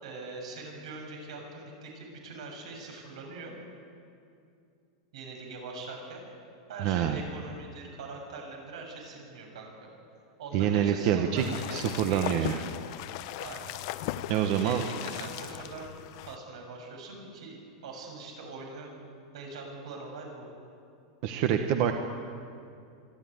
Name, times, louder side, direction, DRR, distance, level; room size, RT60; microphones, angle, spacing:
voice 1, 0.0-3.5 5.1-6.2 6.7-9.9 10.4-12.6 13.4-13.7 14.6-15.9 16.2-17.6 17.8-18.9 19.3-20.5, right 3 dB, 85° right, 1 dB, 7.1 m, -42 dB
voice 2, 6.8-7.2 10.5-12.6 14.3-14.8 21.2-21.9, right 9 dB, 40° right, 6 dB, 1.1 m, -26 dB
sound 1, 11.4-16.4, left 14 dB, 45° left, 0.7 m, -38 dB
26.0 x 12.5 x 9.5 m, 2.5 s
supercardioid pair, 165°, 3 cm